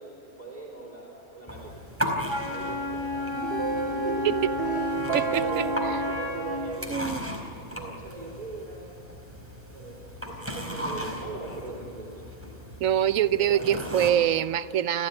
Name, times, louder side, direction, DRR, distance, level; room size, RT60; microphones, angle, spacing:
voice 1, 0.0-1.8 2.4-3.4 3.7-5.0 5.3-7.0 7.7-9.0 9.7-12.4 13.4-13.9, right 3 dB, 25° right, -3 dB, 4.8 m, -40 dB
sound 1, 1.5-14.1, equal, 10° right, 4.3 m, -37 dB
Wind instrument woodwind instrument, 2.3-6.8, left 3 dB, 20° left, 4.0 m, -32 dB
sound 2, 3.1-7.4, right 7 dB, 50° right, 1.1 m, -32 dB
voice 2, 5.1-5.6 6.9-7.2 12.8-15.1, right 10 dB, 70° right, 14 dB, 1.1 m, -24 dB
29.5 x 15.0 x 9.7 m, 2.9 s
omnidirectional pair, 1.5 m